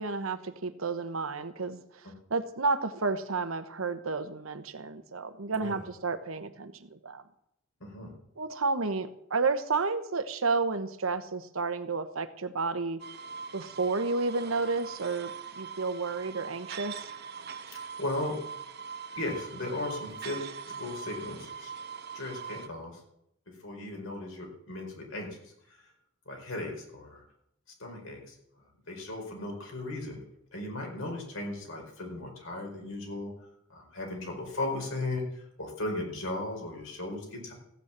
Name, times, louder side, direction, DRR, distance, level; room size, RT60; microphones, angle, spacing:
voice 1, 0.0-7.2 8.4-13.0 13.5-15.3 15.6-17.1, right 4 dB, 80° right, 10 dB, 1.1 m, -31 dB
voice 2, 5.5-5.8 7.8-8.1 17.7-18.4 19.1-21.7 22.1-23.0 23.6-25.3 25.7-25.8 26.2-27.2 27.8-28.3 28.9-30.2 30.5-33.3 33.7-37.5, left 2 dB, 70° left, 1 dB, 4.9 m, -36 dB
sound 1, 13.0-22.7, right 6 dB, 55° right, 0.9 m, -42 dB
15.0 x 9.4 x 7.3 m, 0.77 s
head